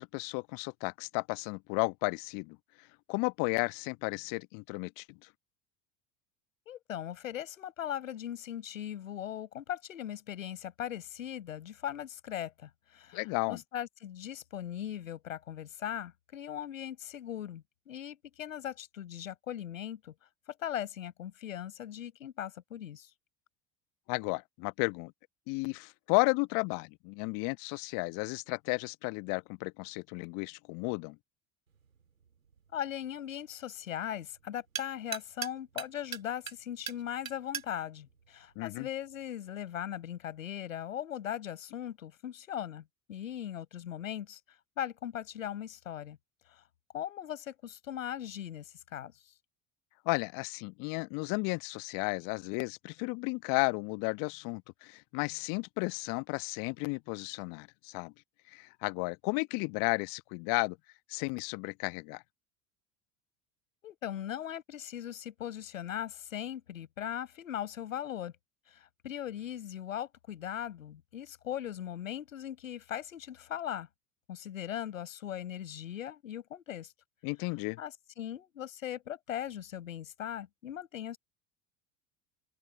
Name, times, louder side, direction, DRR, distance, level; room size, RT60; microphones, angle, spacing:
voice 1, 0.0-2.6 3.1-5.2 13.1-13.6 24.1-25.1 25.5-31.2 38.5-38.9 50.0-58.1 58.5-60.8 61.1-62.2 77.2-77.8, left 32 dB, 55° left, 1.3 m, -33 dB
voice 2, 6.7-20.1 20.6-23.1 32.7-44.4 44.8-46.2 46.5-46.6 46.9-49.1 63.8-68.3 68.7-73.9 74.3-76.9 77.8-81.2, left 10 dB, 75° left, 7.7 m, -39 dB
sound 1, 31.7-39.3, right 7 dB, 85° right, 2.2 m, -45 dB
open air
figure-of-eight pair, 70°, 40 cm